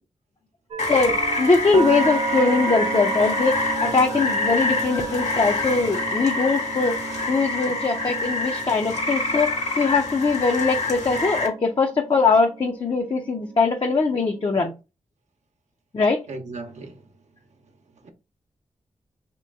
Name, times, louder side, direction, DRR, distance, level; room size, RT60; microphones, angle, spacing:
sound 1, 0.7-14.6, right 3 dB, 55° right, 0.4 m, -33 dB
Rain, 0.8-11.5, left 2 dB, 70° left, 1.5 m, -27 dB
voice 1, 0.9-6.9 7.3-9.5 9.8-14.7 15.9-16.2, left 4 dB, 40° left, 0.6 m, -21 dB
voice 2, 16.3-17.1 17.6-18.1, right 3 dB, 75° right, 0.8 m, -38 dB
3.0 x 3.0 x 3.5 m
wide cardioid pair, 80°, 12 cm